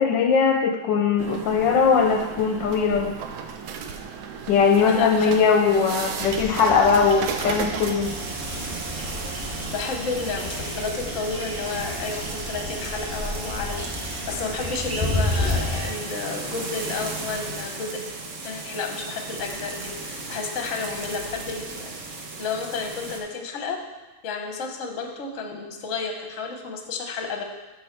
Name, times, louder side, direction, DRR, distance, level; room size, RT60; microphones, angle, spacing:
voice 1, 0.0-3.1 4.5-8.1, left 5 dB, 75° left, 3 dB, 1.2 m, -20 dB
sound 1, 1.2-15.1, right 6 dB, 90° right, 1.5 m, -36 dB
voice 2, 4.9-5.8 9.7-18.0 18.4-23.8 24.2-27.4, left 4 dB, 50° left, 3 dB, 1.1 m, -31 dB
sound 2, 6.2-15.9, left 1 dB, 10° right, 1.6 m, -31 dB
sound 3, 8.0-23.2, right 3 dB, 50° right, 1.1 m, -36 dB
12.0 x 4.4 x 4.5 m, 1.1 s
omnidirectional pair, 2.1 m